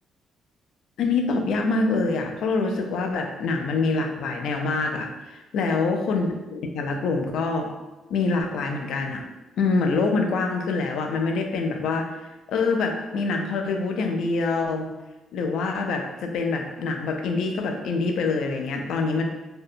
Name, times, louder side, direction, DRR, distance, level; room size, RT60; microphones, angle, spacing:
voice 1, 1.0-7.7 8.1-9.2 9.6-12.1 12.5-14.9 15.3-19.2, left 3 dB, 75° left, 3 dB, 0.3 m, -25 dB
2.6 x 2.0 x 2.6 m, 1.1 s
cardioid pair, 90°, 0 cm